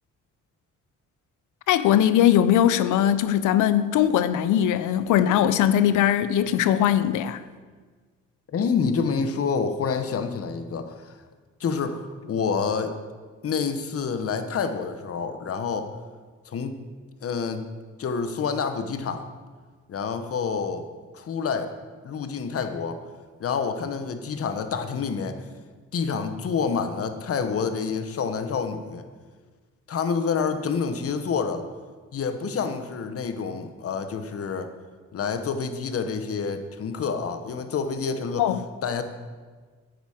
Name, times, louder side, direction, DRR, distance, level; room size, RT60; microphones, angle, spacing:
voice 1, 1.7-7.4 38.4-38.6, left 10 dB, 80° left, 0.5 m, -20 dB
voice 2, 8.5-11.1 11.6-12.9 13.4-15.9 16.5-16.8 17.2-17.7 18.0-19.3 19.9-20.9 21.1-21.7 22.0-23.0 23.4-25.4 25.9-29.0 29.9-31.7 32.1-34.7 35.1-38.5 38.8-39.0, left 5 dB, 50° left, 1.0 m, -28 dB
9.3 x 8.6 x 4.9 m
cardioid pair, 90°, 30 cm